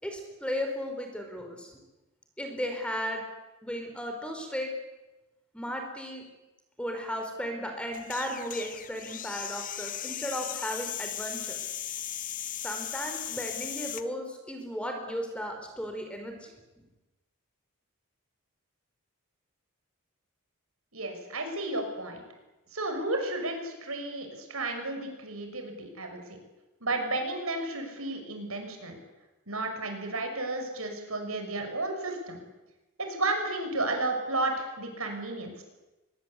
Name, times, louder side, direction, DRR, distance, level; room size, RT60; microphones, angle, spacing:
voice 1, 0.0-1.8 2.4-3.2 3.6-4.7 5.5-6.2 6.8-11.7 12.6-16.5, equal, 5° left, 4 dB, 4.6 m, -35 dB
sound 1, 7.9-14.1, left 11 dB, 35° left, 0.9 m, -37 dB
voice 2, 20.9-22.2 22.7-26.2 26.8-29.0 29.5-32.4 33.0-35.6, right 2 dB, 75° right, 5 dB, 6.3 m, -32 dB
24.5 x 21.0 x 8.4 m, 1.1 s
head